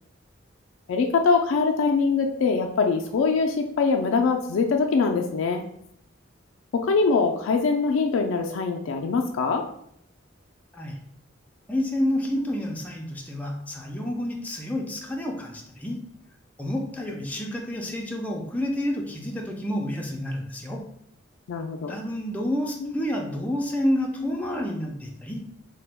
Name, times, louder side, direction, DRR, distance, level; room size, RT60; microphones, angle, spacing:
voice 1, 0.9-5.6 6.7-9.6 12.3-12.4 21.5-22.0 22.8-22.9 24.2-24.4, left 4 dB, 85° left, 3 dB, 0.3 m, -23 dB
voice 2, 11.7-16.0 16.6-20.8 21.9-25.4, left 1 dB, 10° left, -1 dB, 0.4 m, -29 dB
2.9 x 2.2 x 3.3 m, 0.70 s
head